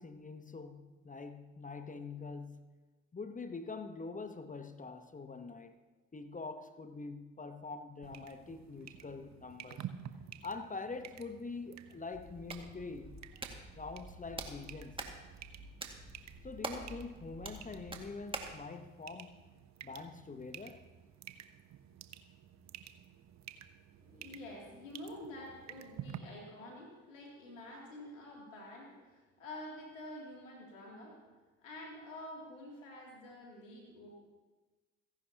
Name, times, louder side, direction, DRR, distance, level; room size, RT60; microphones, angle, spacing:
voice 1, 0.0-2.8 3.1-5.8 6.1-9.9 10.4-13.2 13.7-15.0 16.4-19.4 19.8-20.9, left 4 dB, 20° left, 1.0 m, -45 dB
sound 1, 8.0-26.2, right 10 dB, 45° right, 1.0 m, -52 dB
Hands, 12.1-18.6, right 2 dB, 15° right, 2.0 m, -46 dB
voice 2, 24.0-31.2 31.6-34.1, left 1 dB, 80° left, 2.9 m, -48 dB
28.5 x 11.0 x 2.9 m
figure-of-eight pair, 45°, 38 cm